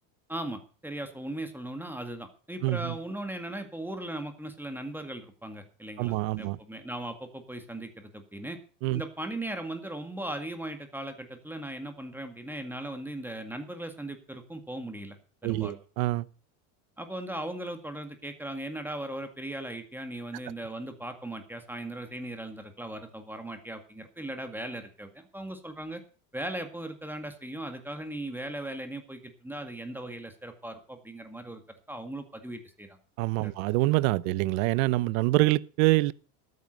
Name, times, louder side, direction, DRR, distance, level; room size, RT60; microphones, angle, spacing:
voice 1, 0.3-8.6 8.9-15.2 15.4-15.8 17.0-26.0 26.3-31.6 31.9-32.9 33.4-33.5, right 1 dB, 5° right, 2.0 m, -38 dB
voice 2, 2.6-2.9 6.0-6.6 8.8-9.0 15.4-16.3 33.2-36.1, right 19 dB, 70° right, 0.8 m, -26 dB
13.0 x 9.6 x 6.6 m
supercardioid pair, 130°, 43 cm